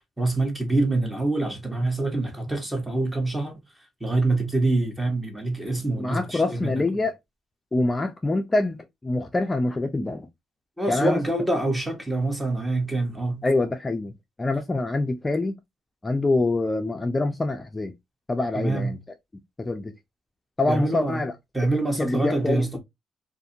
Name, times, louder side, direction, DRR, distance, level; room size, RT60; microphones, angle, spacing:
voice 1, 0.2-3.6 4.0-6.8 10.8-13.4 18.5-19.0 20.6-21.2 21.5-22.8, right 2 dB, 10° right, 1.0 m, -25 dB
voice 2, 6.0-7.1 7.7-10.3 10.9-11.2 13.4-14.1 14.4-15.6 16.0-17.9 18.3-19.0 19.6-19.9 20.6-21.3 22.0-22.8, left 2 dB, 20° left, 0.4 m, -25 dB
2.5 x 2.5 x 2.6 m
cardioid pair, 90°, 0 cm